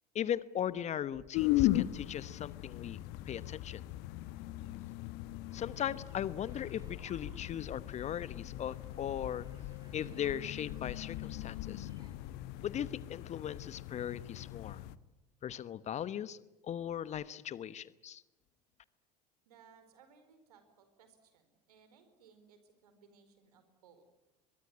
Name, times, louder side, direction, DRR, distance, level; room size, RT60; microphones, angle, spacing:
voice 1, 0.1-3.0 3.3-3.8 5.5-9.4 9.9-11.9 12.6-14.8 15.4-16.4 16.6-18.2, left 10 dB, 35° left, 17 dB, 1.1 m, -38 dB
sound 1, 1.3-15.0, left 16 dB, 50° left, 1.1 m, -38 dB
sound 2, 5.5-12.1, right 3 dB, 20° right, 5.4 m, -65 dB
voice 2, 19.4-24.0, right 6 dB, 70° right, 9 dB, 4.8 m, -63 dB
23.0 x 22.5 x 9.9 m, 0.98 s
figure-of-eight pair, 70°, 21 cm